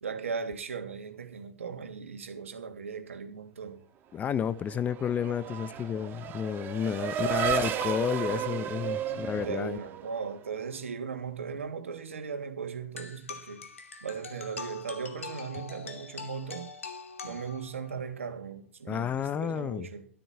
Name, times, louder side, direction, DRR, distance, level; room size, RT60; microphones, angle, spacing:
voice 1, 0.0-3.8 7.2-7.5 9.3-13.7 14.0-16.7 17.2-20.1, right 6 dB, 75° right, 3.0 m, -38 dB
voice 2, 4.1-9.8 18.9-19.9, left 8 dB, 20° left, 0.9 m, -31 dB
Race car auto racing / Accelerating revving vroom, 4.4-10.5, right 10 dB, 30° right, 2.2 m, -33 dB
sound 1, 13.0-18.0, left 5 dB, 80° left, 2.7 m, -43 dB
13.5 x 13.0 x 4.6 m
hypercardioid pair, 105°, 7 cm